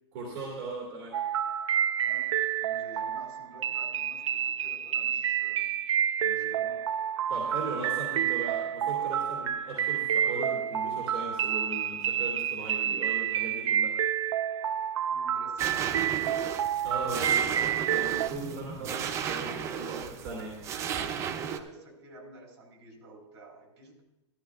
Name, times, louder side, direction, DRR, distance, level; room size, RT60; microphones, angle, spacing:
voice 1, 0.1-1.1 7.3-13.9 16.8-20.5, right 3 dB, 40° right, -4 dB, 2.2 m, -38 dB
sound 1, 1.1-18.3, right 9 dB, 85° right, 0.5 m, -29 dB
voice 2, 2.6-5.7 6.2-6.8 15.1-16.2 20.8-24.0, right 2 dB, 60° right, 0 dB, 4.2 m, -50 dB
sound 2, 15.6-21.6, right 8 dB, 20° right, 0.4 m, -34 dB
14.0 x 13.0 x 2.4 m, 0.90 s
hypercardioid pair, 155°, 15 cm